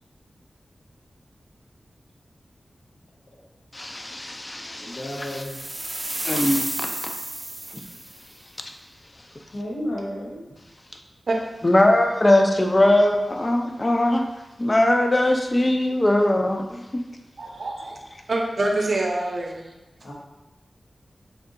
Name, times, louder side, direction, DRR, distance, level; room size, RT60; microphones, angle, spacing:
voice 1, 3.7-5.0 6.3-6.9 11.6-14.3 14.6-17.0, left 1 dB, 30° left, 3 dB, 0.4 m, -20 dB
voice 2, 4.8-5.6 7.2-7.3 9.5-10.5 20.0-20.1, equal, 85° left, -5 dB, 1.0 m, -32 dB
sound 1, 5.2-8.2, right 1 dB, 25° right, 0.5 m, -31 dB
voice 3, 17.4-18.0 18.3-19.7, right 2 dB, 70° right, 0 dB, 0.6 m, -25 dB
4.4 x 2.7 x 2.5 m, 1.0 s
wide cardioid pair, 75°, 0 cm